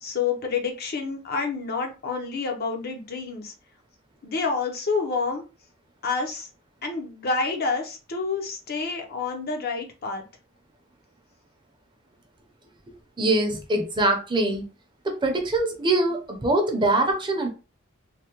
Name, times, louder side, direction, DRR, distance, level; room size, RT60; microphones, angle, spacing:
voice 1, 0.0-3.5 4.2-5.4 6.0-6.5 6.8-10.2, left 4 dB, 50° left, 3 dB, 0.6 m, -28 dB
voice 2, 13.2-14.7 15.0-17.5, right 2 dB, 25° right, 3 dB, 0.6 m, -23 dB
3.3 x 2.1 x 2.9 m, 0.31 s
head